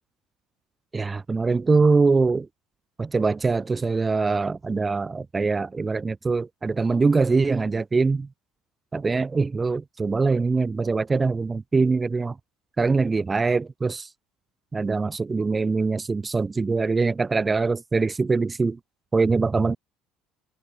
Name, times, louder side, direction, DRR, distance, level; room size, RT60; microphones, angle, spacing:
voice 1, 0.9-2.5 3.0-8.3 8.9-12.3 12.8-14.1 14.7-18.8 19.1-19.8, right 4 dB, 25° right, 0.9 m, -23 dB
hypercardioid pair, 65°, 0 cm